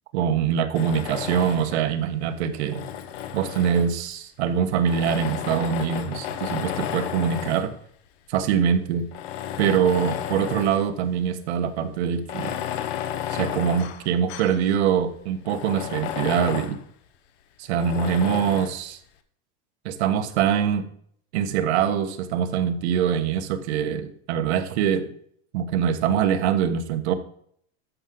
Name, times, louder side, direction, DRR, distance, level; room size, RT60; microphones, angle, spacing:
voice 1, 0.1-2.9 3.3-7.7 8.3-9.1 9.6-12.5 13.3-16.8 17.6-19.0 19.8-20.9 21.3-25.1 25.5-27.1, right 8 dB, 75° right, 8 dB, 1.2 m, -24 dB
Tools, 0.7-1.9 2.5-4.1 4.8-7.7 8.4-8.5 9.1-10.9 11.2-11.3 12.2-14.6 15.0-15.1 15.4-16.8 17.8-18.8, left 10 dB, 70° left, 1.1 m, -32 dB
12.5 x 5.7 x 3.8 m, 0.64 s
supercardioid pair, 165°, 33 cm